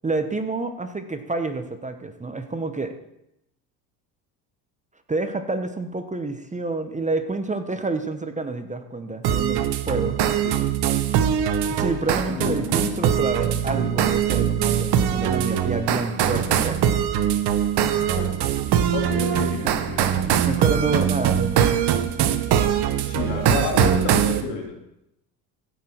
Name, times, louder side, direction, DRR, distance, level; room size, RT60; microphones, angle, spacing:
voice 1, 0.0-2.9 5.1-10.2 11.7-16.9 19.6-19.7 20.5-21.7, right 3 dB, 15° right, 8 dB, 1.1 m, -28 dB
sound 1, 9.2-24.4, right 9 dB, 55° right, 1.2 m, -22 dB
voice 2, 12.3-13.1 17.8-18.3 18.9-20.6 23.0-24.8, left 5 dB, 70° left, 1 dB, 3.0 m, -31 dB
16.5 x 6.2 x 4.5 m, 0.82 s
hypercardioid pair, 75°, 48 cm